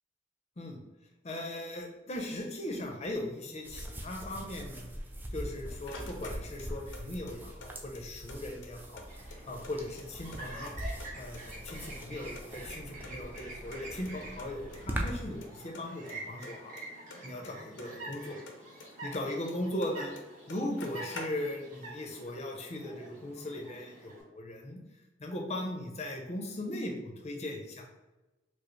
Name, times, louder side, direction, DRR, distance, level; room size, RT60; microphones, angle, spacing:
voice 1, 1.2-4.9 5.3-9.1 9.5-10.7 11.1-16.8 17.2-18.4 19.0-20.1 20.5-24.8 25.2-27.8, left 1 dB, 35° left, 2 dB, 0.6 m, -38 dB
sound 1, 3.6-15.4, right 1 dB, 10° right, 0.3 m, -42 dB
sound 2, 5.3-7.0 7.3-8.4 8.6-8.7 9.0-10.4 10.7-11.4 11.7-13.1 13.4-13.5 13.7-13.8 14.1-14.2 14.4-14.8 15.1-15.5 15.7-18.2 18.5-19.9 20.2-20.3 20.5-21.7, left 3 dB, 75° left, 0.6 m, -47 dB
Chirp tweet, 9.1-24.2, right 1 dB, 40° right, 1.2 m, -47 dB
4.8 x 2.0 x 3.1 m, 1.1 s
head